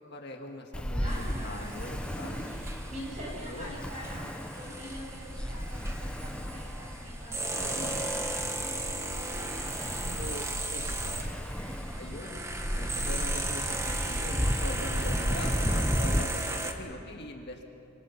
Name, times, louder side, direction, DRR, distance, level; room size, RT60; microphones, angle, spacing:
voice 1, 0.0-2.3 3.2-3.8 7.5-8.0 10.2-10.4 10.7-11.3 12.0-16.3 16.6-17.7, left 1 dB, 50° left, 2 dB, 1.9 m, -42 dB
Ocean, 0.7-16.2, equal, 5° left, 0.9 m, -34 dB
voice 2, 1.0-8.9 9.1-10.5 11.3-12.1 14.9-15.9 16.4-17.1, equal, 30° right, -3 dB, 8.0 m, -45 dB
sound 1, 1.1-16.7, right 2 dB, 15° right, 1.3 m, -36 dB
27.5 x 25.0 x 5.9 m, 2.7 s
head